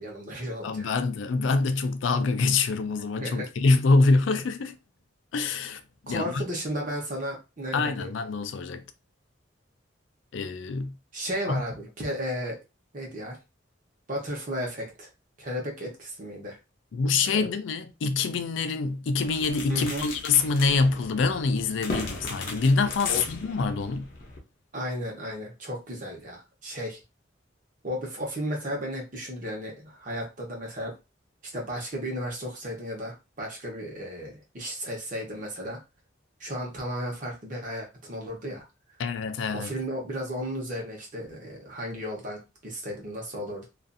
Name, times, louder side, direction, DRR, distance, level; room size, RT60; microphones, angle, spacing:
voice 1, 0.0-0.9 3.2-3.5 6.1-8.1 11.1-12.6 12.9-13.4 14.1-15.1 15.4-16.6 17.2-17.5 19.7-20.1 22.0-22.1 23.0-23.2 24.7-27.0 27.8-30.9 31.5-35.8 36.4-38.6 39.5-43.7, equal, 45° right, 0.9 m, -34 dB
voice 2, 0.6-4.8 5.3-5.8 6.1-6.4 7.7-8.8 10.3-10.9 11.5-11.6 16.9-24.1 39.0-39.7, left 4 dB, 75° left, 0.4 m, -25 dB
sound 1, 19.2-24.4, left 2 dB, 45° left, 0.7 m, -38 dB
2.5 x 2.4 x 2.5 m
head